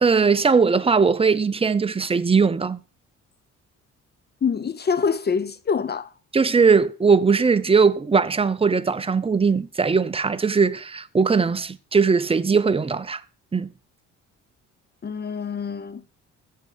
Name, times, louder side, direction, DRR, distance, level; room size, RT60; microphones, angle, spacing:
voice 1, 0.0-2.8 6.3-13.2 13.5-13.7, right 5 dB, 20° right, 0.7 m, -19 dB
voice 2, 4.4-6.1 15.0-16.0, left 6 dB, 35° left, 0.7 m, -25 dB
7.7 x 6.6 x 8.1 m
cardioid pair, 90°, 30 cm